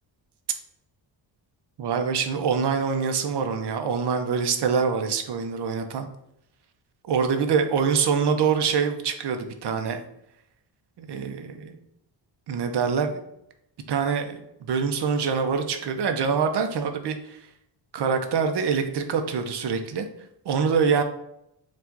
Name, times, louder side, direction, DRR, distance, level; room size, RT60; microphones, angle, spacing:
voice 1, 1.8-6.1 7.1-10.0 11.0-11.7 12.5-13.2 13.9-17.4 17.9-20.1 20.5-21.0, right 6 dB, 60° right, 6 dB, 0.6 m, -25 dB
4.6 x 2.4 x 3.8 m, 0.80 s
cardioid pair, 115°, 47 cm